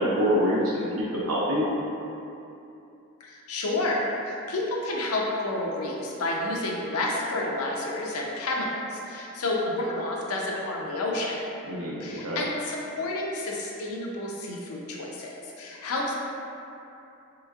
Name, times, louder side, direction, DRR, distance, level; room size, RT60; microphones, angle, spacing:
voice 1, 0.0-1.7 11.7-12.4, equal, 90° right, -6 dB, 0.7 m, -26 dB
voice 2, 3.2-11.4 12.0-16.1, left 2 dB, 85° left, -2 dB, 0.5 m, -30 dB
3.3 x 2.9 x 2.3 m, 2.8 s
head